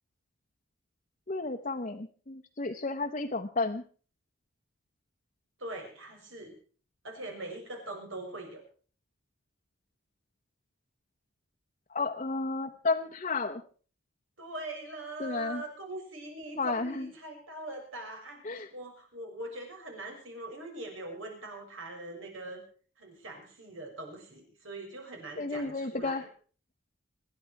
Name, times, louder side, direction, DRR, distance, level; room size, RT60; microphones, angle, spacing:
voice 1, 1.3-3.8 11.9-13.6 15.2-15.6 16.6-17.1 18.4-18.7 25.4-26.3, left 3 dB, 35° left, 2 dB, 0.9 m, -32 dB
voice 2, 5.6-6.5 7.0-8.6 14.4-22.6 23.0-26.2, right 2 dB, 75° right, 2 dB, 6.5 m, -42 dB
25.0 x 10.5 x 4.7 m, 0.41 s
head